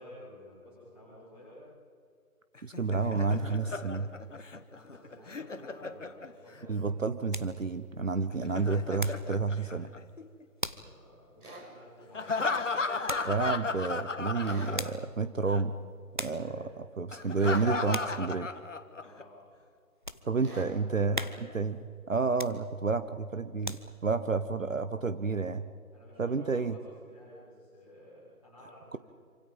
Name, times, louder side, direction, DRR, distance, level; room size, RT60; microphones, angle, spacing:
voice 1, 0.0-1.6 4.5-6.9 10.6-13.1 16.3-16.6 18.9-19.4 20.0-20.1 20.9-21.5 25.9-29.0, left 1 dB, 5° right, -10 dB, 4.5 m, -52 dB
Laughter, 2.6-6.6 8.3-10.4 12.1-15.2 15.5-15.6 17.1-19.2, left 3 dB, 55° left, 1.7 m, -35 dB
voice 2, 2.6-4.1 6.7-9.9 13.2-15.7 16.2-18.5 20.2-21.2 21.5-21.8 22.1-25.6 26.2-26.7 28.9-29.0, right 4 dB, 60° right, 12 dB, 1.1 m, -30 dB
sound 1, 6.7-9.4 9.7-10.1 10.6-11.0 11.4-11.5 13.1-13.4 14.5-15.2 15.7-15.8 16.1-16.5 17.0-17.4 17.9-18.3 18.7-18.8 19.4-20.3 20.7-20.8 21.1-21.7 22.3-22.9 23.4-24.1 24.6-24.7, equal, 35° right, 0.7 m, -40 dB
sound 2, 11.4-11.7 14.4-14.8 17.4-17.7 20.4-20.7, right 1 dB, 80° right, 7.4 m, -46 dB
27.5 x 26.0 x 5.5 m, 2.1 s
figure-of-eight pair, 175°, 45 cm